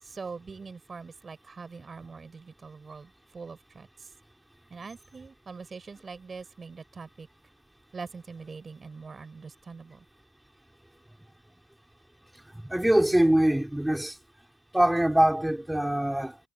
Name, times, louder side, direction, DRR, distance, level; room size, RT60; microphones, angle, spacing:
voice 1, 0.0-4.1 4.7-7.3 7.9-10.1, right 4 dB, 35° right, 5.3 m, -43 dB
voice 2, 12.5-14.2 14.7-16.4, right 1 dB, 5° right, 4.7 m, -23 dB
supercardioid pair, 80°, 0 cm